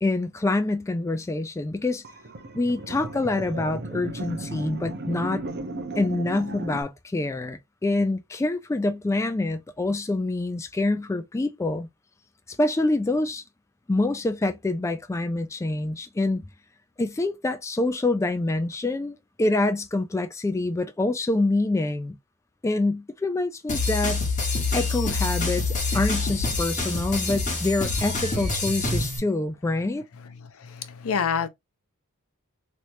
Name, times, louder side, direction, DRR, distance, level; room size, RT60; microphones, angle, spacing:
voice 1, 0.0-2.0 2.5-5.4 6.0-11.9 12.6-13.4 13.9-16.5 17.0-22.2 22.6-24.2 24.7-30.1, left 2 dB, 15° left, 0.3 m, -26 dB
sound 1, 2.0-6.8, right 2 dB, 50° right, 0.7 m, -35 dB
sound 2, 23.7-29.2, left 3 dB, 35° left, 1.2 m, -26 dB
voice 2, 30.2-31.5, left 6 dB, 65° left, 0.6 m, -28 dB
3.2 x 2.9 x 2.6 m
head